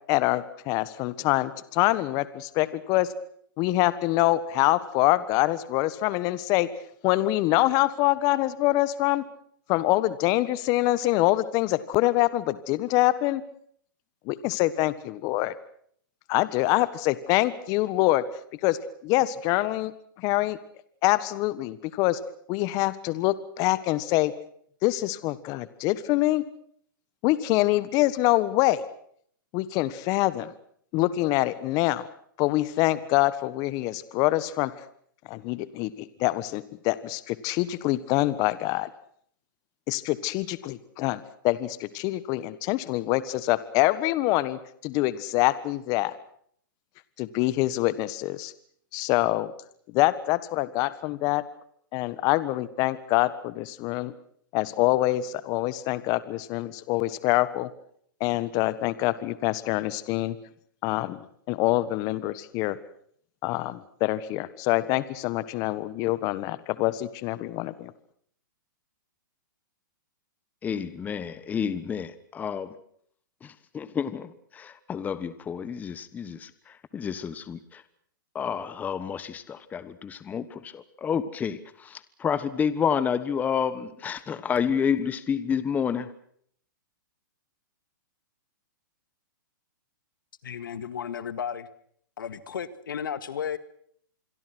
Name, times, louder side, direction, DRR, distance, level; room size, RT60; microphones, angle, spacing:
voice 1, 0.1-3.1 3.6-6.7 7.0-9.2 9.7-13.4 14.3-15.5 16.3-18.2 18.6-18.8 19.0-19.9 20.2-20.6 21.0-22.2 22.5-24.3 24.8-26.4 27.2-28.8 29.5-30.5 30.9-32.1 32.4-34.7 35.3-38.9 39.9-46.1 47.2-48.5 48.9-49.5 49.9-51.4 51.9-54.1 54.5-57.7 58.2-60.3 60.8-61.2 61.5-62.8 63.4-67.9, left 17 dB, 35° left, 1.4 m, -25 dB
voice 2, 70.6-72.8 73.4-77.8 78.3-86.1, left 7 dB, 15° left, 1.2 m, -30 dB
voice 3, 90.4-91.7 92.2-93.6, left 8 dB, 80° left, 2.0 m, -33 dB
27.0 x 22.5 x 6.2 m
hypercardioid pair, 140°, 11 cm